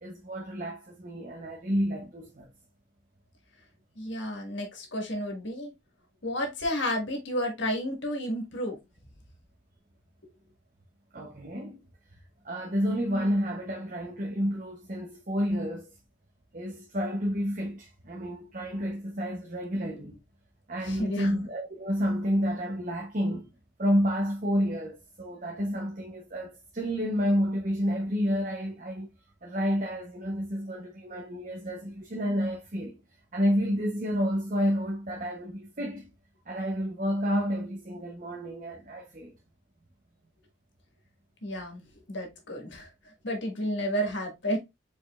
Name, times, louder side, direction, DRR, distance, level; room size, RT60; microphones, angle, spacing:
voice 1, 0.0-2.5 11.1-11.8 12.4-15.9 16.5-20.2 20.7-23.5 23.8-29.1 29.4-33.0 33.3-36.0 36.5-39.3, equal, 40° right, 0.8 m, -30 dB
voice 2, 3.9-5.7 6.2-8.8 20.8-21.4 41.4-42.9 43.2-44.6, equal, 65° left, 1.7 m, -31 dB
5.0 x 4.3 x 2.4 m
head